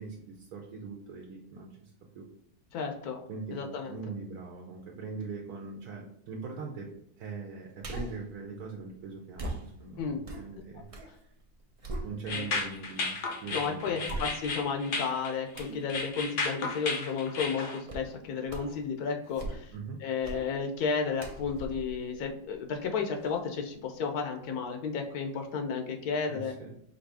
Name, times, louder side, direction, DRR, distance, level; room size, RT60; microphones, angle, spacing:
voice 1, 0.0-2.3 3.3-6.9 7.2-11.2 12.0-13.2 13.4-14.1 19.7-20.0 26.3-26.7, right 4 dB, 70° right, -1 dB, 1.2 m, -41 dB
voice 2, 2.7-3.2 3.5-4.0 10.0-10.3 12.3-12.6 13.5-19.7 20.0-26.5, left 5 dB, 75° left, 4 dB, 1.1 m, -33 dB
sound 1, 7.8-8.3 9.4-11.1 11.5-12.6 13.1-13.2 14.0-14.7 15.5-15.9 17.9-18.1 18.5-18.8 19.2-19.8 20.2-20.5 21.2-22.9 23.2-23.3, right 2 dB, 50° right, 0.4 m, -40 dB
sound 2, 12.3-17.8, left 3 dB, 55° left, 0.7 m, -34 dB
4.9 x 2.7 x 3.4 m, 0.72 s
omnidirectional pair, 1.7 m